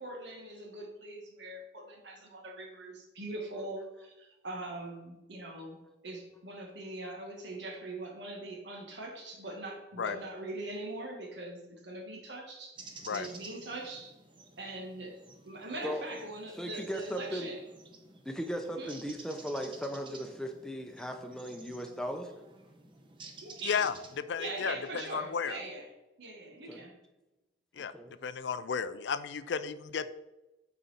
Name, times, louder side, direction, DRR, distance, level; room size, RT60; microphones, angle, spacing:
voice 1, 0.0-12.8 13.1-14.1 14.6-17.6 18.8-18.9 23.4-23.8 24.4-25.9 26.2-27.0, right 2 dB, 75° right, 2 dB, 1.5 m, -42 dB
sound 1, 12.8-24.2, right 3 dB, 25° right, 0.8 m, -53 dB
voice 2, 16.6-17.5 18.2-22.3 26.7-26.8 27.9-28.1, equal, 5° left, 4 dB, 0.7 m, -37 dB
voice 3, 23.6-25.6 27.8-27.9 28.2-30.1, left 6 dB, 85° left, 14 dB, 0.4 m, -33 dB
9.3 x 4.2 x 4.1 m, 0.99 s
head